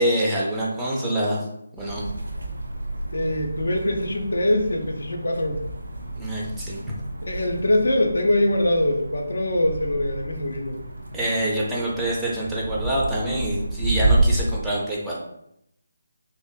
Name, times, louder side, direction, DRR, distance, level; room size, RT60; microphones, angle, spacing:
voice 1, 0.0-1.4 1.7-2.0 6.2-6.8 11.1-15.2, right 1 dB, 5° right, -6 dB, 0.4 m, -25 dB
sound 1, 1.8-14.4, right 2 dB, 70° right, 0.5 m, -30 dB
voice 2, 3.1-5.6 7.2-10.8, left 1 dB, 65° left, 3 dB, 0.4 m, -23 dB
2.4 x 2.4 x 2.2 m, 0.78 s
figure-of-eight pair, 150°, 0 cm